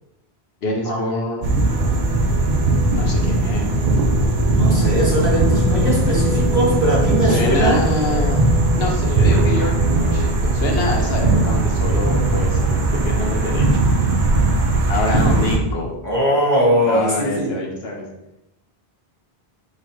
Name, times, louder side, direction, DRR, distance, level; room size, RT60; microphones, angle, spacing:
voice 1, 0.6-1.5 2.9-3.7 7.2-8.4 8.8-12.8 13.0-13.9 14.9-15.9 16.8-18.0, left 1 dB, 80° left, 0 dB, 1.0 m, -25 dB
sound 1, 1.4-15.6, right 2 dB, 55° right, 0.7 m, -19 dB
sound 2, 1.6-10.3, left 2 dB, 80° right, 1.1 m, -26 dB
voice 2, 4.5-7.8 16.0-17.5, right 1 dB, 15° right, -7 dB, 1.6 m, -20 dB
4.0 x 2.4 x 4.4 m, 0.88 s
omnidirectional pair, 1.0 m